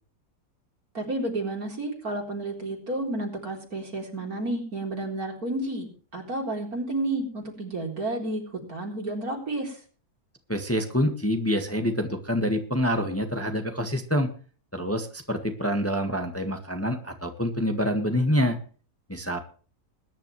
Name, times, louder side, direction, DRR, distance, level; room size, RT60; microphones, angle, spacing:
voice 1, 0.9-5.9 6.1-8.4 8.7-9.8, right 2 dB, 65° right, 1 dB, 4.5 m, -31 dB
voice 2, 10.5-14.3 14.7-18.6 19.1-19.4, equal, 10° left, 5 dB, 1.6 m, -26 dB
21.5 x 10.5 x 3.3 m, 0.39 s
omnidirectional pair, 1.7 m